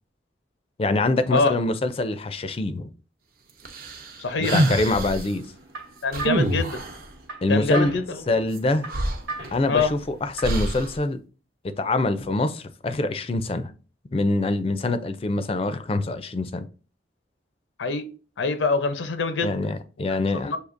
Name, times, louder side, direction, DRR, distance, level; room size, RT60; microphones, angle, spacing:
voice 1, 0.8-2.9 4.5-5.4 7.4-7.9 8.3-8.9 9.5-11.2 11.8-13.7 14.1-16.7 19.4-20.5, left 2 dB, 30° left, 0.3 m, -24 dB
sound 1, 3.7-5.3 6.1-7.1 8.6-8.7 8.9-9.9 10.4-11.0, right 1 dB, 50° right, 0.7 m, -26 dB
voice 2, 4.2-4.6 6.0-6.8 7.5-8.2 9.7-10.0 17.8-19.6 20.3-20.6, left 4 dB, 90° left, 0.6 m, -25 dB
sound 2, 5.3-10.7, right 3 dB, 75° right, 1.1 m, -39 dB
6.4 x 2.7 x 2.5 m
head